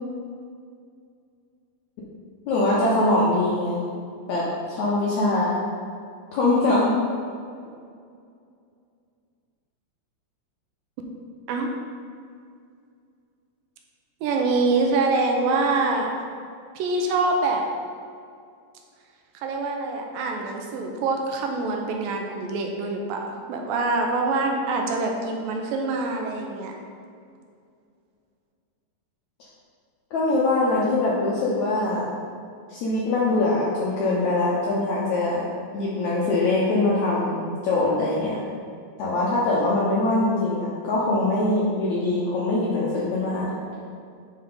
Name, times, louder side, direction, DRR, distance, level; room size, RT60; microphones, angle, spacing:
voice 1, 2.5-3.8 4.3-5.6 6.3-7.0 30.1-32.1 32.7-35.5 35.7-38.4 39.0-43.6, left 2 dB, 75° left, -6 dB, 1.7 m, -23 dB
voice 2, 14.2-16.1 16.8-17.6 19.4-23.2 23.5-26.7, right 3 dB, 80° right, 2 dB, 2.2 m, -25 dB
9.2 x 3.9 x 3.7 m, 2.3 s
omnidirectional pair, 4.2 m